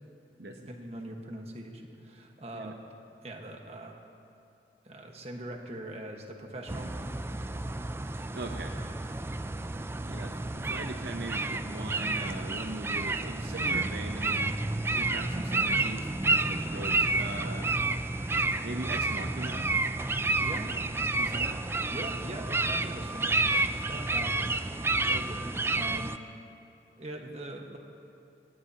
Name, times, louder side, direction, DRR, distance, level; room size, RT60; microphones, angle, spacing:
voice 1, 0.7-2.8 3.2-4.0 4.8-6.9 20.4-20.7 21.9-26.1 27.0-27.8, right 1 dB, 35° right, 2 dB, 1.4 m, -42 dB
sound 1, 6.7-26.2, right 2 dB, 15° right, 0.3 m, -30 dB
voice 2, 8.3-8.8 10.0-14.6 14.9-17.7 18.6-19.7 21.2-21.6, right 2 dB, 65° right, 3 dB, 0.8 m, -40 dB
24.0 x 18.0 x 2.9 m, 2.7 s
head